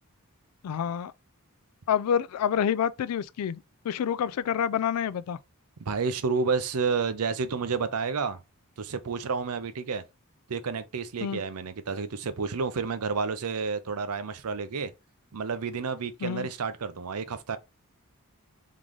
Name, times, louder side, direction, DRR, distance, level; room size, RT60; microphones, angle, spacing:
voice 1, 0.6-1.1 1.9-5.4 11.2-11.4 16.2-16.5, left 8 dB, 75° left, 0.3 m, -28 dB
voice 2, 5.8-8.4 8.8-10.0 10.5-14.9 15.3-17.6, right 5 dB, 80° right, 0.6 m, -30 dB
3.8 x 3.7 x 3.1 m
head